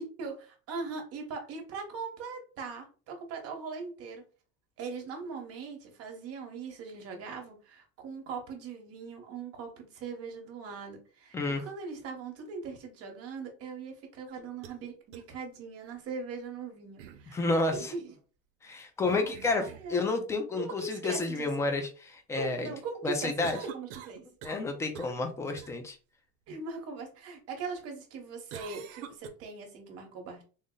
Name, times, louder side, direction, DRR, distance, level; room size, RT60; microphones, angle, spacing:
voice 1, 0.0-4.2 4.8-17.4 17.7-18.1 19.0-20.0 20.5-21.5 22.4-23.3 23.7-24.3 26.5-30.4, right 4 dB, 40° right, 3 dB, 1.1 m, -40 dB
sound 1, 14.3-14.8 15.1-15.2 17.0-17.3 19.0-19.9 23.4-24.7 24.9-25.2 25.6-25.7 28.5-29.3, right 10 dB, 85° right, 0.7 m, -45 dB
voice 2, 17.3-17.7 18.6-22.7 23.0-23.6 24.4-26.0, left 3 dB, 10° left, 6 dB, 0.3 m, -30 dB
3.8 x 2.1 x 3.7 m, 0.36 s
cardioid pair, 155°, 35 cm